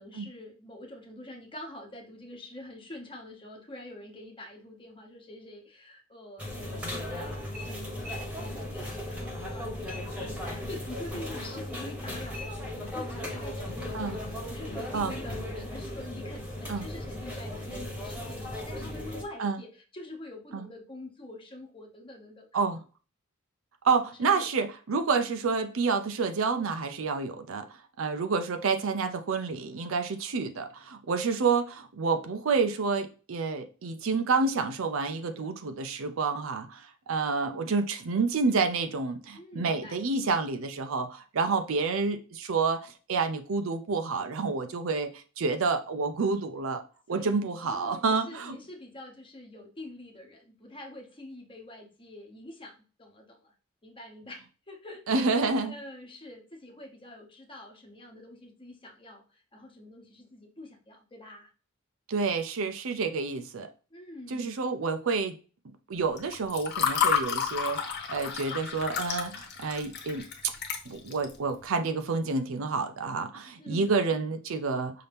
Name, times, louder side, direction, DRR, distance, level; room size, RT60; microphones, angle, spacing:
voice 1, 0.0-6.5 6.9-7.4 7.6-22.6 24.2-24.5 39.3-40.0 47.1-53.5 53.8-55.4 55.7-61.5 63.9-64.7 73.6-74.1, left 1 dB, 25° left, 1.0 m, -46 dB
sound 1, 6.4-19.2, left 1 dB, 5° right, 1.1 m, -37 dB
voice 2, 23.8-27.6 28.0-46.8 47.1-48.6 55.1-55.8 62.1-63.7 64.3-65.4 65.9-67.8 68.1-70.2 70.9-74.9, right 4 dB, 65° right, 0.5 m, -29 dB
Water / Fill (with liquid), 66.2-71.3, left 7 dB, 50° left, 1.1 m, -30 dB
5.7 x 2.8 x 3.4 m
head